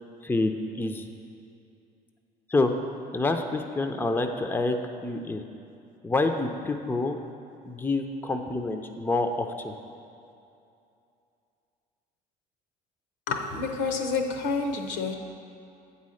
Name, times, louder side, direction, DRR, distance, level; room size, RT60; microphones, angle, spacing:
voice 1, 0.2-1.1 2.5-2.7 3.1-4.8 5.0-5.4 6.0-7.2 7.6-9.7, left 2 dB, 10° left, 5 dB, 0.5 m, -27 dB
voice 2, 13.3-15.2, left 4 dB, 75° left, 5 dB, 0.8 m, -28 dB
8.1 x 4.2 x 6.3 m, 2.7 s
supercardioid pair, 80°, 19 cm